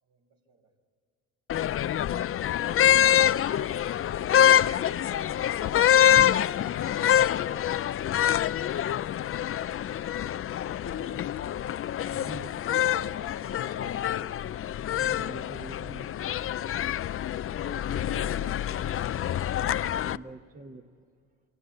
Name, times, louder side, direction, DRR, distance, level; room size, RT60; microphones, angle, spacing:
voice 1, 0.0-0.8 10.5-12.1, right 3 dB, 70° right, 2 dB, 4.5 m, -63 dB
sound 1, 1.5-20.2, left 10 dB, 45° left, 0.5 m, -26 dB
voice 2, 2.6-3.5 4.7-6.0 6.5-7.5 9.9-10.0 10.5-11.2 12.7-14.2 17.5-19.0, left 8 dB, 60° left, 7 dB, 1.3 m, -41 dB
voice 3, 12.1-12.5 14.9-16.1 20.0-21.1, right 3 dB, 25° right, 5 dB, 1.2 m, -44 dB
26.0 x 18.5 x 8.3 m, 2.3 s
cardioid pair, 90°, 30 cm